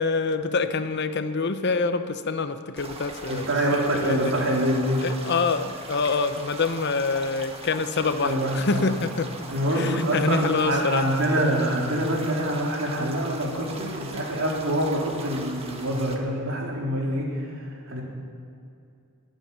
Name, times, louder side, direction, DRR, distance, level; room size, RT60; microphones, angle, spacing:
voice 1, 0.0-4.3 5.0-9.3 9.7-11.1, left 4 dB, 55° left, 10 dB, 0.8 m, -26 dB
sound 1, 2.8-16.2, right 2 dB, 30° right, 1.5 m, -40 dB
voice 2, 3.3-5.0 8.0-8.9 9.5-17.3 17.9-18.0, right 1 dB, 70° right, -2 dB, 3.5 m, -25 dB
21.5 x 9.1 x 6.9 m, 2.5 s
head